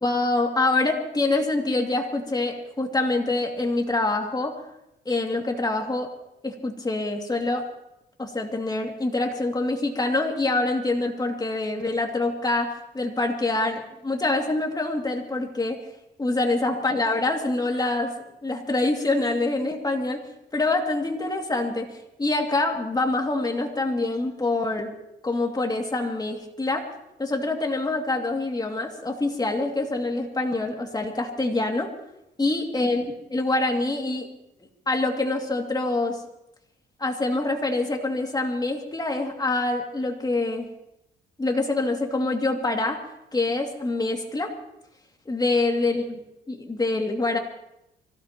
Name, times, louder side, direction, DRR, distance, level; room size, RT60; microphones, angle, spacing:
voice 1, 0.0-4.5 5.1-6.1 6.4-7.6 8.2-15.8 16.2-18.1 18.4-20.2 20.5-24.9 25.2-26.9 27.2-31.9 32.4-33.0 33.3-34.3 34.9-36.2 37.0-40.7 41.4-43.0 43.3-44.5 45.3-46.2 46.5-47.4, left 2 dB, 20° left, 2 dB, 2.5 m, -25 dB
24.5 x 16.5 x 3.0 m, 0.87 s
cardioid pair, 90°, 20 cm